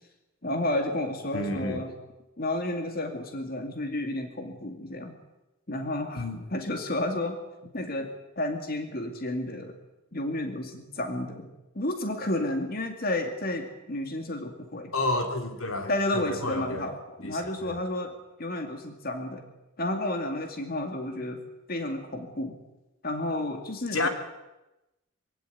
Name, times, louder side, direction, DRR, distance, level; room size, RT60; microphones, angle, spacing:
voice 1, 0.4-1.9 2.4-5.1 5.7-7.4 7.7-9.8 10.1-11.5 11.7-14.9 15.9-19.5 19.8-21.4 21.7-22.6 23.0-24.1, left 1 dB, 45° left, 5 dB, 2.4 m, -31 dB
voice 2, 1.3-1.8 6.1-6.4 14.9-16.9 17.2-17.7 23.9-24.1, left 2 dB, 75° left, 6 dB, 3.0 m, -30 dB
24.0 x 17.0 x 9.4 m, 0.99 s
head